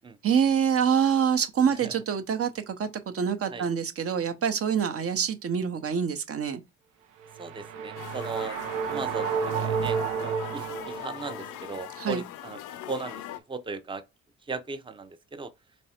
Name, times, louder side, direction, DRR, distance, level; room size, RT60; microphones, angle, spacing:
voice 1, 0.2-6.6 12.0-12.2, right 7 dB, 50° right, 0.8 m, -26 dB
sound 1, 7.2-11.5, right 6 dB, 90° right, 0.7 m, -31 dB
voice 2, 7.4-8.6 8.9-12.6 12.9-13.2 13.5-14.0 14.5-15.5, right 4 dB, 15° right, 0.6 m, -37 dB
sound 2, 8.0-13.4, left 12 dB, 80° left, 0.5 m, -41 dB
3.5 x 3.2 x 4.3 m
cardioid pair, 90°, 30 cm